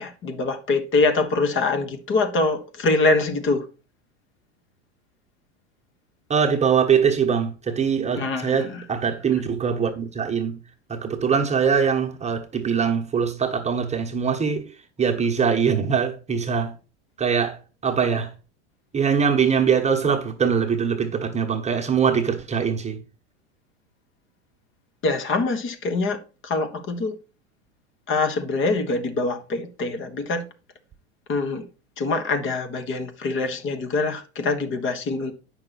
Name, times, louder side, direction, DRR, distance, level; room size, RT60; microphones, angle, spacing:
voice 1, 0.0-3.7 8.2-8.8 25.0-26.2 26.4-27.1 28.1-30.4 31.3-31.6 32.0-35.3, left 3 dB, 35° left, 1.4 m, -24 dB
voice 2, 6.3-10.6 10.9-14.7 15.0-16.7 17.2-17.6 17.8-18.3 18.9-23.0, right 6 dB, 20° right, 1.3 m, -22 dB
8.8 x 5.9 x 4.2 m
hypercardioid pair, 95°, 35 cm